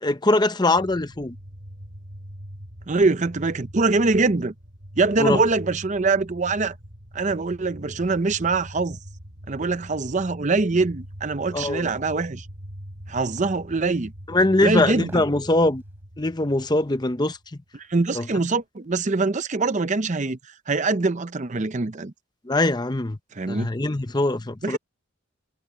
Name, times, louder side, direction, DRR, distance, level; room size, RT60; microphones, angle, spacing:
voice 1, 0.0-1.3 5.2-5.4 11.5-11.9 14.3-15.8 16.2-17.4 18.1-18.3 22.5-23.2 23.5-24.8, left 2 dB, 20° left, 0.7 m, -22 dB
sound 1, 0.7-17.5, equal, 60° right, 4.3 m, -42 dB
voice 2, 2.9-4.5 5.0-6.7 7.1-9.0 9.5-12.5 13.1-14.1 14.6-15.2 17.7-20.4 20.7-22.1 23.3-23.7 24.6-24.8, right 3 dB, 35° right, 0.7 m, -23 dB
sound 2, 11.6-11.8 13.4-13.6 15.0-15.4 15.8-15.9, right 1 dB, 10° right, 4.3 m, -43 dB
head